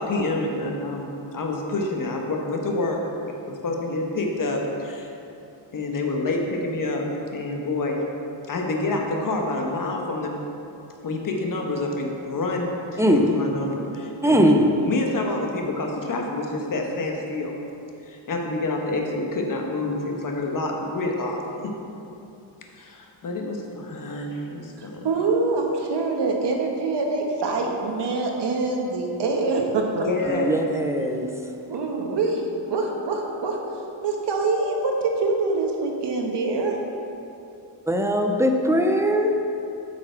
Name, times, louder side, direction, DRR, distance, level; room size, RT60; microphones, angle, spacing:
voice 1, 0.0-3.0 3.6-5.1 5.7-7.1 7.3-8.0 8.5-10.3 11.0-14.5 14.8-17.6 18.0-21.7 22.7-25.1 29.9-30.6, left 2 dB, 45° left, 1 dB, 1.1 m, -27 dB
voice 2, 13.0-13.3 14.2-14.6 30.3-31.3 37.9-39.3, equal, 5° right, 2 dB, 0.5 m, -20 dB
voice 3, 24.8-30.5 31.7-32.4 32.7-33.6 34.0-36.8, right 3 dB, 60° right, 1 dB, 1.3 m, -25 dB
9.0 x 6.0 x 4.5 m, 2.8 s
cardioid pair, 125°, 47 cm